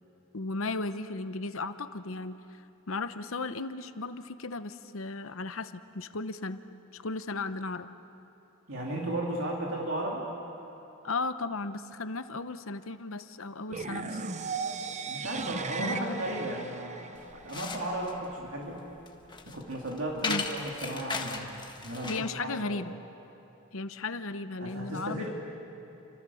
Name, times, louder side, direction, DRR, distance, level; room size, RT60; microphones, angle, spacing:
voice 1, 0.3-6.6 6.9-7.9 11.0-14.2 15.8-16.2 20.2-20.4 22.1-22.9 23.7-25.3, left 3 dB, 60° left, 11 dB, 0.9 m, -35 dB
voice 2, 8.7-10.2 15.0-17.1 17.4-18.9 19.4-21.5 21.8-22.8 24.6-25.3, right 1 dB, 60° right, -2 dB, 2.8 m, -35 dB
sound 1, 13.7-17.7, right 4 dB, 30° right, 0.8 m, -37 dB
sound 2, 17.1-22.3, left 4 dB, 20° left, 1.5 m, -37 dB
29.5 x 26.0 x 7.1 m, 2.9 s
head